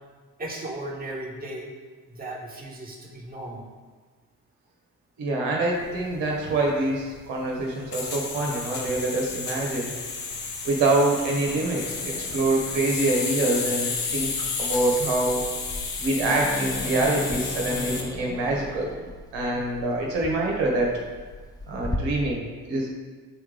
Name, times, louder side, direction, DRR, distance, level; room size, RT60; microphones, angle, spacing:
voice 1, 0.4-1.7 2.1-3.7, right 1 dB, 20° right, -4 dB, 1.6 m, -36 dB
voice 2, 5.2-9.9 10.6-14.3 14.6-15.4 16.0-18.9 19.3-21.0 21.7-22.9, right 2 dB, 65° right, -1 dB, 1.5 m, -25 dB
sound 1, 5.7-18.1, left 4 dB, 85° left, 0.7 m, -32 dB
Growling, 11.5-22.0, left 1 dB, 10° left, 0.6 m, -37 dB
8.1 x 3.6 x 3.5 m, 1.4 s
figure-of-eight pair, 45°, 46 cm